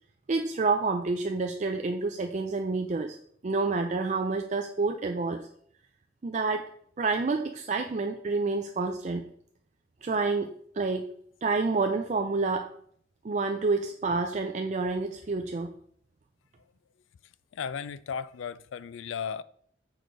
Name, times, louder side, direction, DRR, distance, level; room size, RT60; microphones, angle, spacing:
voice 1, 0.3-3.2 3.4-5.4 6.2-6.7 7.0-9.2 10.0-11.1 11.4-12.7 13.2-15.7, right 3 dB, 40° right, 0.4 m, -28 dB
voice 2, 17.5-19.4, left 7 dB, 80° left, 0.4 m, -35 dB
6.3 x 4.7 x 5.2 m
head